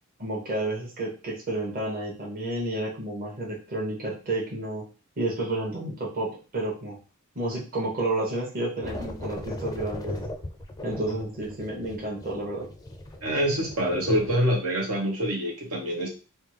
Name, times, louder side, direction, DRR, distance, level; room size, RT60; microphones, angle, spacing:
voice 1, 0.2-4.9 5.2-7.0 7.3-10.2 10.8-12.7, right 2 dB, 40° right, -3 dB, 1.0 m, -31 dB
sound 1, 8.8-14.4, left 1 dB, 15° left, 0.4 m, -39 dB
voice 2, 13.2-16.1, equal, 90° right, -3 dB, 1.2 m, -25 dB
3.5 x 2.2 x 3.0 m, 0.34 s
head